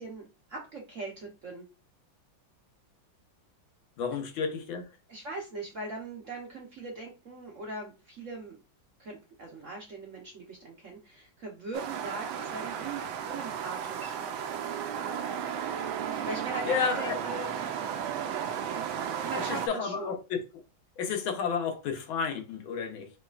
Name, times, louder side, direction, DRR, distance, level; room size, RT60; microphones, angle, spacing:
voice 1, 0.0-1.6 5.1-8.6 9.0-14.2 16.2-17.5 18.7-18.8 19.2-20.2, right 3 dB, 55° right, 0.9 m, -40 dB
voice 2, 4.0-4.9 16.6-17.2 19.3-20.4 21.0-23.1, left 6 dB, 80° left, 1.6 m, -31 dB
sound 1, 11.7-19.7, right 8 dB, 80° right, 1.3 m, -34 dB
4.6 x 3.2 x 2.3 m
omnidirectional pair, 2.2 m